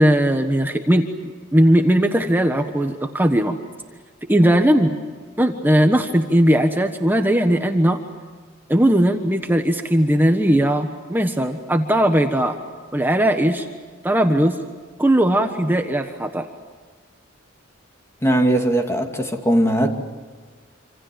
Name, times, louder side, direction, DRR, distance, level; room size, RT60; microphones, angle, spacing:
voice 1, 0.0-3.6 4.3-5.0 5.4-8.0 8.7-12.6 12.9-13.7 14.0-14.6 15.0-16.5, right 1 dB, 10° right, 1.3 m, -18 dB
voice 2, 18.2-19.9, right 1 dB, 15° left, 2.5 m, -19 dB
27.0 x 26.5 x 7.6 m
head